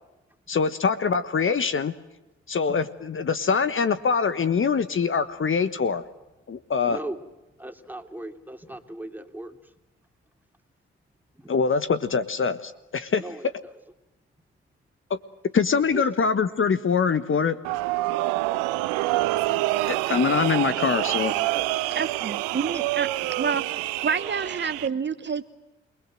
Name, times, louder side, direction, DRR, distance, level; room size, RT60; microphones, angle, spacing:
voice 1, 0.5-1.9 2.5-6.0 6.5-7.0 11.5-13.2 15.5-17.6 19.9-21.3, left 5 dB, 40° left, 12 dB, 1.4 m, -24 dB
voice 2, 6.8-7.2 7.6-9.7 11.4-11.5 13.2-13.8 15.9-16.0, right 1 dB, 5° right, 5 dB, 3.1 m, -38 dB
sound 1, 17.6-24.9, right 18 dB, 75° right, 0.8 m, -27 dB
voice 3, 21.9-23.6 24.0-25.4, right 6 dB, 35° right, 11 dB, 1.1 m, -28 dB
28.5 x 20.5 x 7.7 m, 1.0 s
hypercardioid pair, 40°, 31 cm